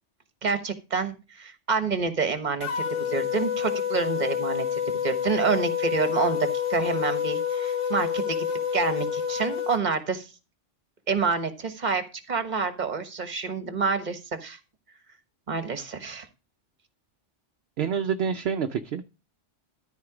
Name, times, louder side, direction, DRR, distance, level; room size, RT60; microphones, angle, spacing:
voice 1, 0.4-8.5 8.7-10.3 11.1-14.6 15.5-16.3, right 5 dB, 40° right, 10 dB, 1.3 m, -28 dB
sound 1, 2.6-9.8, left 8 dB, 85° left, 1.5 m, -28 dB
voice 2, 17.8-19.1, right 7 dB, 65° right, 8 dB, 0.8 m, -27 dB
13.0 x 4.6 x 4.9 m, 0.29 s
omnidirectional pair, 1.2 m